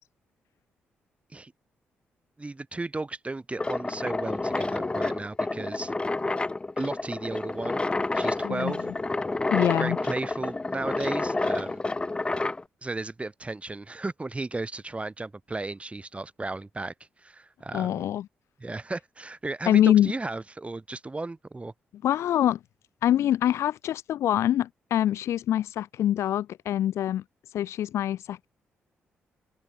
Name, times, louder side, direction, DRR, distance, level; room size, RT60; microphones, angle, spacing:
voice 1, 2.4-5.9 6.8-7.8 8.1-8.8 9.5-11.8 12.8-16.9 17.2-18.0 18.6-21.7, right 2 dB, 25° right, 3.7 m, -34 dB
sound 1, 3.6-12.6, left 2 dB, 20° left, 0.5 m, -29 dB
voice 2, 8.4-8.7 9.5-10.0 17.7-18.3 19.6-20.1 22.0-22.6 23.0-27.2 27.5-28.5, left 11 dB, 75° left, 1.2 m, -24 dB
open air
hypercardioid pair, 45°, 5 cm